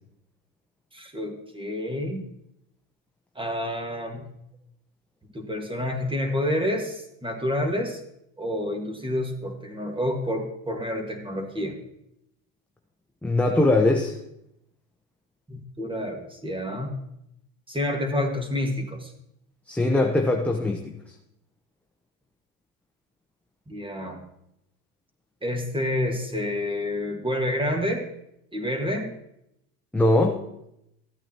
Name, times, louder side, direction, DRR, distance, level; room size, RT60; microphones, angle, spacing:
voice 1, 0.9-2.3 3.4-4.3 5.3-8.0 8.4-11.8 15.5-16.9 17.7-19.1 23.7-24.2 25.4-28.1 28.5-29.1, left 1 dB, 10° right, 4 dB, 1.8 m, -28 dB
voice 2, 13.2-14.2 19.7-21.0 29.9-30.4, left 2 dB, 5° left, 2 dB, 0.7 m, -21 dB
14.0 x 8.9 x 3.0 m, 0.81 s
supercardioid pair, 90°, 42 cm